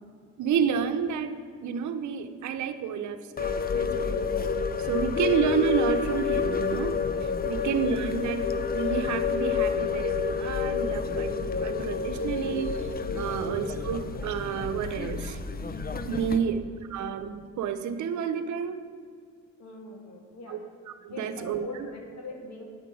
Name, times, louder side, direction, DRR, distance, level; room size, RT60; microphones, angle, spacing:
voice 1, 0.4-4.2 4.8-15.4 16.1-16.6 16.9-18.8 20.5-20.6 21.0-21.6, right 7 dB, 70° right, 8 dB, 0.9 m, -30 dB
sound 1, 3.4-16.4, left 6 dB, 30° left, 0.7 m, -29 dB
voice 2, 4.8-5.4 7.4-7.7 13.3-13.6 16.2-16.5 19.6-20.6 21.1-22.7, left 2 dB, 60° left, 0 dB, 2.6 m, -43 dB
9.4 x 5.9 x 8.4 m, 2.2 s
cardioid pair, 90°, 30 cm